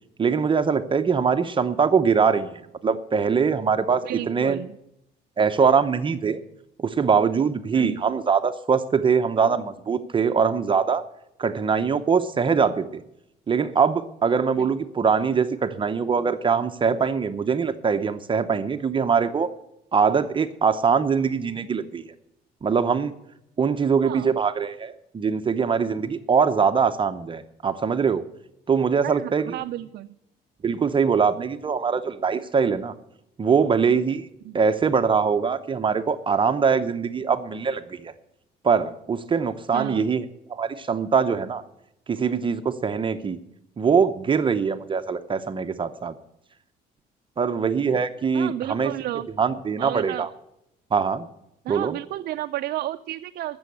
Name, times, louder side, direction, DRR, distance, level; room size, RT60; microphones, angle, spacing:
voice 1, 0.2-4.6 5.4-6.4 6.8-11.0 11.4-13.0 13.5-19.5 19.9-22.0 22.6-23.1 23.6-28.2 28.7-29.6 30.6-32.9 33.4-34.3 34.5-38.1 38.6-41.6 42.1-43.4 43.8-46.1 47.4-48.9 49.4-50.3 50.9-51.3 51.7-52.0, right 6 dB, 30° right, 8 dB, 0.8 m, -22 dB
voice 2, 4.0-4.8 7.7-8.0 14.6-14.7 24.0-24.4 29.0-30.1 34.4-34.6 39.7-40.0 48.3-49.3 49.8-50.3 51.6-53.6, right 14 dB, 65° right, 7 dB, 0.5 m, -32 dB
14.0 x 7.0 x 7.9 m, 0.81 s
cardioid pair, 110°, 17 cm